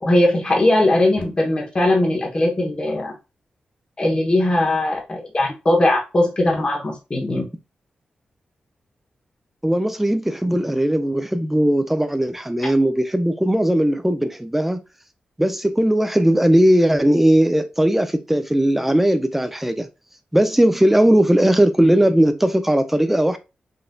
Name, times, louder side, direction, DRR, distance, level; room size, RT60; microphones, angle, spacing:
voice 1, 0.0-3.1 4.0-7.4, left 1 dB, 30° left, 1.0 m, -19 dB
voice 2, 9.6-14.8 15.4-19.9 20.3-23.4, right 1 dB, 5° right, 0.4 m, -18 dB
4.0 x 2.6 x 2.3 m
cardioid pair, 85°, 3 cm